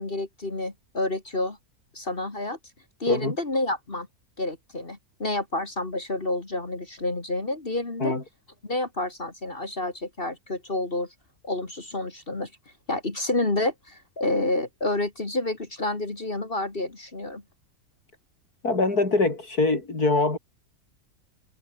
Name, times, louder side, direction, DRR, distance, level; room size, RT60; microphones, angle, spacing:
voice 1, 0.0-1.6 1.9-2.6 3.0-4.1 4.4-8.2 8.6-11.1 11.4-12.5 12.9-17.4, left 2 dB, 35° left, 2.6 m, -29 dB
voice 2, 18.6-20.4, left 3 dB, 75° left, 5.2 m, -23 dB
omnidirectional pair, 1.6 m